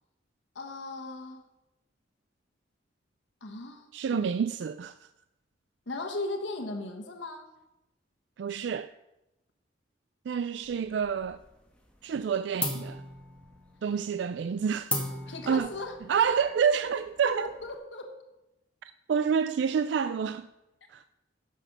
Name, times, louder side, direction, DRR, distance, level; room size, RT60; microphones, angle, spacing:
voice 1, 0.5-1.4 3.4-4.3 5.9-7.5 15.3-16.0 16.2-16.3 17.4-18.1, left 2 dB, 75° left, 1.2 m, -37 dB
voice 2, 3.9-5.0 8.4-8.9 10.3-11.4 12.0-13.0 13.8-15.0 15.5-15.7 16.1-17.5 19.1-20.5 20.9-21.0, right 7 dB, 65° right, 0.3 m, -28 dB
sound 1, 10.6-11.5 11.8-12.2 12.6-17.8, left 2 dB, 5° left, 1.3 m, -37 dB
10.5 x 6.3 x 6.6 m
head